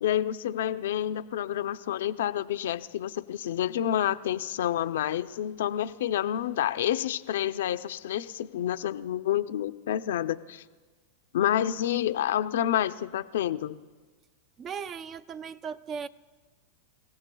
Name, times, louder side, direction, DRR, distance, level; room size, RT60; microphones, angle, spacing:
voice 1, 0.0-10.6 11.3-13.8, left 11 dB, 80° left, 0.5 m, -29 dB
voice 2, 14.6-16.1, right 6 dB, 25° right, 0.4 m, -37 dB
29.0 x 16.5 x 2.3 m
supercardioid pair, 135°, 0 cm